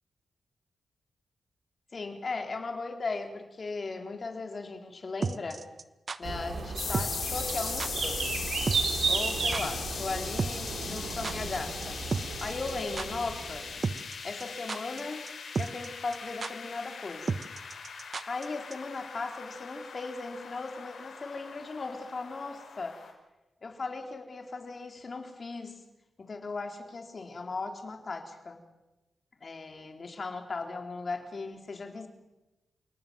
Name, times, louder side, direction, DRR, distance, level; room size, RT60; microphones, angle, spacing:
voice 1, 1.9-5.6 6.2-8.4 9.1-12.0 12.4-13.7 14.2-15.3 15.6-17.5 18.3-23.0 23.6-25.8 26.2-28.6 29.4-32.1, left 3 dB, 45° left, 4 dB, 4.0 m, -37 dB
sound 1, 5.2-6.2 6.9-7.3 7.5-7.6 7.8-8.1 8.4-8.5 8.7-9.0 9.2-9.3 9.5-9.6 10.4-11.6 11.8-11.9 12.1-12.7 13.0-13.1 13.8-14.1 14.4-15.0 15.3-15.4 15.5-16.2 16.4-16.5 17.3-18.4 18.7-18.8, right 4 dB, 45° right, 1.1 m, -32 dB
sound 2, 6.2-13.9, right 4 dB, 70° right, 4.3 m, -34 dB
sound 3, 6.8-23.1, left 5 dB, 80° left, 5.9 m, -40 dB
29.0 x 18.5 x 7.8 m, 1.0 s
cardioid pair, 85°, 0 cm